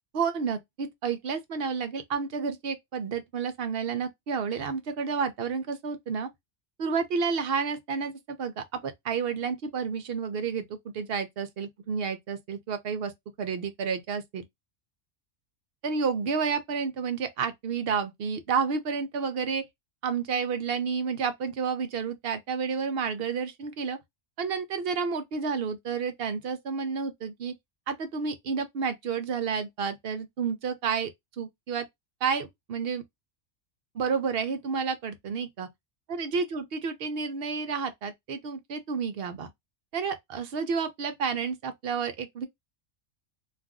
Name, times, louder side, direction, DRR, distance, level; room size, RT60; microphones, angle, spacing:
voice 1, 0.1-6.3 6.8-13.1 13.4-14.4 15.8-19.6 20.0-24.0 24.4-27.5 27.9-31.1 31.4-31.9 32.2-33.0 33.9-35.7 36.1-39.5 39.9-42.5, right 5 dB, 60° right, 0.7 m, -30 dB
2.5 x 2.3 x 3.5 m
omnidirectional pair, 1.2 m